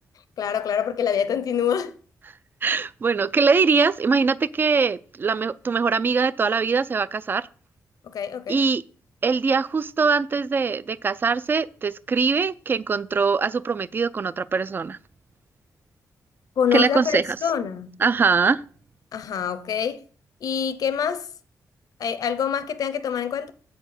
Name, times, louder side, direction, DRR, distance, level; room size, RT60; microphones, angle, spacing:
voice 1, 0.4-1.9 8.0-8.6 16.6-18.0 19.1-20.0 20.4-21.3 22.0-23.5, left 8 dB, 70° left, 0.8 m, -25 dB
voice 2, 2.6-7.4 8.5-8.8 9.2-15.0 16.7-17.4 18.0-18.6, right 5 dB, 35° right, 0.4 m, -22 dB
7.9 x 4.3 x 6.6 m
wide cardioid pair, 125°, 6 cm